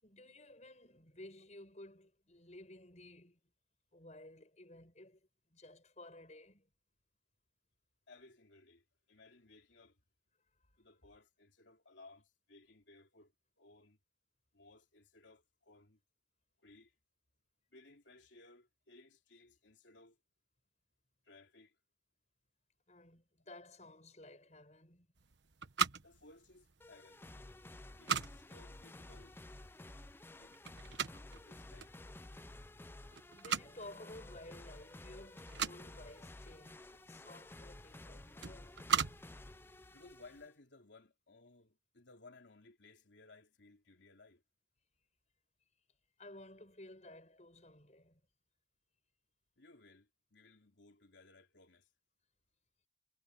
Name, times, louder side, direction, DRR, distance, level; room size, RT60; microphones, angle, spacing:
voice 1, 0.0-3.4 3.9-6.7 22.9-25.1 33.3-39.2 46.2-48.2, left 1 dB, 40° left, 7.8 m, -55 dB
voice 2, 8.1-10.0 10.8-14.0 14.5-16.0 16.6-16.9 17.7-20.2 21.2-21.8 26.0-27.2 27.9-29.4 30.4-30.6 31.3-32.0 39.9-44.4 49.6-51.9, left 3 dB, 80° left, 3.0 m, -61 dB
sound 1, 25.2-40.4, right 6 dB, 75° right, 1.2 m, -42 dB
sound 2, 26.8-40.5, left 2 dB, 10° left, 0.4 m, -53 dB
head